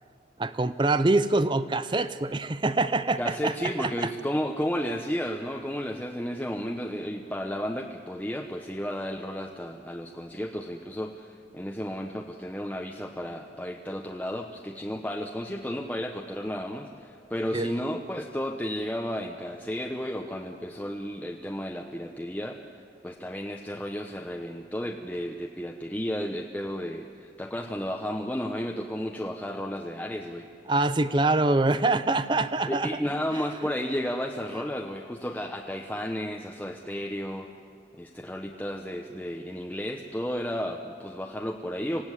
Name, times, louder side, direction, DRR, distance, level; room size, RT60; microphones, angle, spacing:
voice 1, 0.4-4.1 17.5-17.7 30.7-32.9, right 2 dB, 25° right, 13 dB, 0.5 m, -25 dB
voice 2, 3.2-22.6 23.0-30.5 32.6-37.5 37.9-42.0, equal, 10° left, 2 dB, 0.9 m, -33 dB
25.5 x 17.0 x 9.8 m, 2.4 s
head